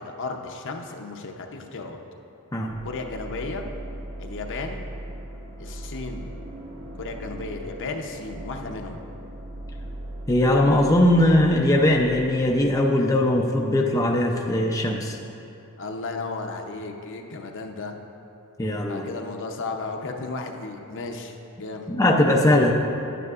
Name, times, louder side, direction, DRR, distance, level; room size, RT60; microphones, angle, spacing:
voice 1, 0.0-2.0 2.8-3.6 4.2-4.9 5.6-6.3 7.0-9.0 15.8-17.9 18.9-21.9, left 3 dB, 60° left, 3 dB, 0.7 m, -34 dB
sound 1, 2.6-13.4, right 1 dB, 75° right, 1.2 m, -39 dB
voice 2, 10.3-15.2 18.6-19.1 21.9-22.7, left 1 dB, 15° left, 0 dB, 0.4 m, -20 dB
11.0 x 9.3 x 2.4 m, 2.7 s
head